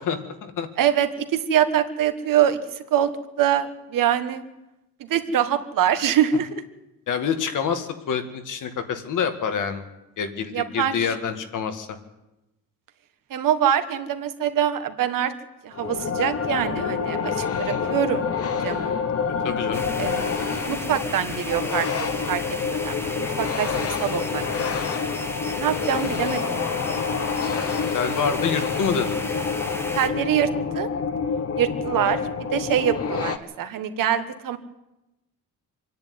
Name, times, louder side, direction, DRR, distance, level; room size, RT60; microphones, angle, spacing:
voice 1, 0.0-0.7 7.1-9.8 10.2-12.0 19.4-19.9 27.4-29.2, left 6 dB, 60° left, 7 dB, 2.0 m, -27 dB
voice 2, 0.8-3.1 3.4-4.4 5.0-6.6 10.5-11.1 13.3-15.3 15.6-18.3 18.6-19.0 20.0-22.4 22.7-24.8 25.6-26.9 29.9-30.9 31.6-34.6, right 9 dB, 70° right, 8 dB, 1.7 m, -24 dB
sound 1, 15.7-33.4, left 6 dB, 45° left, 1.2 m, -27 dB
sound 2, 19.7-30.1, left 1 dB, 5° left, 1.4 m, -34 dB
26.0 x 10.5 x 9.6 m, 0.97 s
cardioid pair, 175°, 34 cm